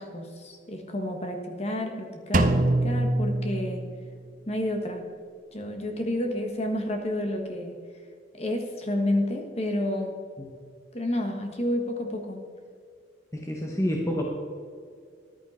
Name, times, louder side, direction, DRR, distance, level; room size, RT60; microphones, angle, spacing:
voice 1, 0.0-3.8 4.5-5.1 5.5-7.7 8.3-10.1 10.9-12.4, left 1 dB, 35° left, 3 dB, 1.5 m, -30 dB
Drum, 2.3-4.3, right 2 dB, 45° right, 0.7 m, -24 dB
voice 2, 13.3-14.2, equal, 15° left, 0 dB, 1.1 m, -28 dB
14.0 x 10.5 x 4.3 m, 2.1 s
head